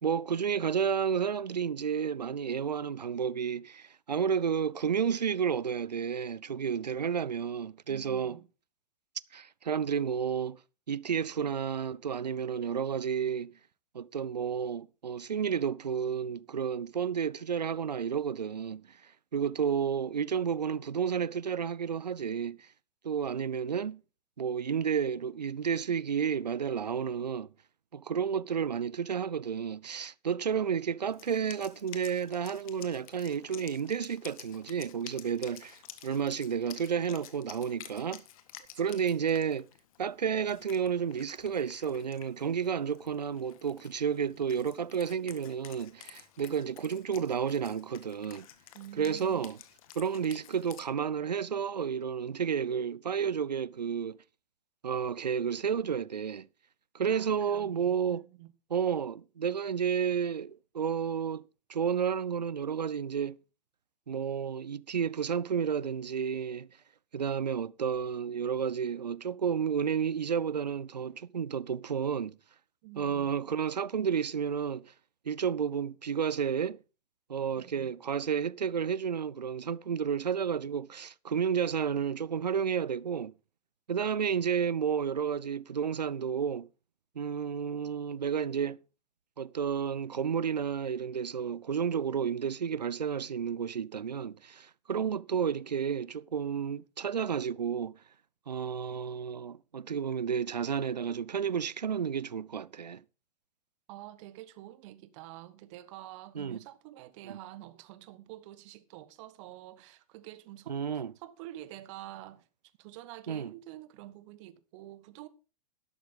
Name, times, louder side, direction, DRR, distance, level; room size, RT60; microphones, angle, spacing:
voice 1, 0.0-8.4 9.3-10.6 10.9-13.5 13.9-18.8 19.3-22.7 23.0-24.0 24.4-27.5 27.9-35.8 36.0-38.2 38.8-39.7 40.0-48.5 49.0-49.6 50.0-54.2 54.8-56.5 56.9-58.2 58.7-63.4 64.1-66.7 67.1-72.4 73.0-74.9 75.3-76.8 77.3-83.3 83.9-86.7 87.2-88.8 89.4-98.0 98.5-103.0 106.3-106.6 107.2-107.4 110.7-111.1 113.3-113.5, right 7 dB, 85° right, 0.5 m, -31 dB
voice 2, 7.9-8.5 38.8-39.0 48.7-49.5 57.1-58.5 72.8-73.3 103.9-112.4 112.8-115.3, right 15 dB, 50° right, 1.2 m, -48 dB
Wind instrument woodwind instrument, 31.1-50.8, left 11 dB, 60° left, 1.6 m, -52 dB
12.0 x 11.5 x 3.7 m
figure-of-eight pair, 95°, 21 cm